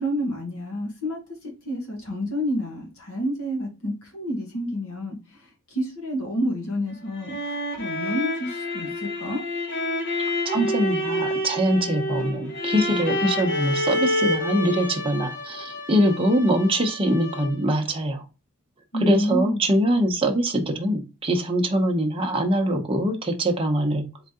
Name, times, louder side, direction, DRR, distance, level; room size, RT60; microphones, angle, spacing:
voice 1, 0.0-9.5 18.9-19.6, equal, 75° left, 1.7 m, -29 dB
sound 1, 6.9-17.8, left 1 dB, 55° left, 1.2 m, -28 dB
voice 2, 10.4-18.2 19.0-24.0, right 1 dB, 25° right, 0.8 m, -23 dB
3.8 x 3.2 x 3.6 m
head